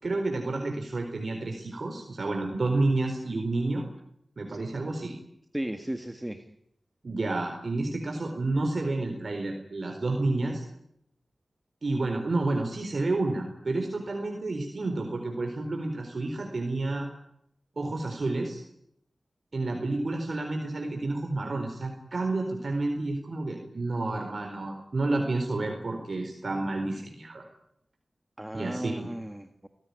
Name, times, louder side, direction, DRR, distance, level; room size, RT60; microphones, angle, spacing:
voice 1, 0.0-3.8 4.4-5.1 7.0-10.6 11.8-17.1 17.8-18.6 19.5-27.5 28.5-29.1, right 2 dB, 60° right, 3 dB, 4.2 m, -30 dB
voice 2, 5.5-6.4 28.4-29.7, right 1 dB, 15° right, 7 dB, 1.8 m, -35 dB
25.0 x 17.0 x 9.7 m, 0.75 s
cardioid pair, 45°, 0 cm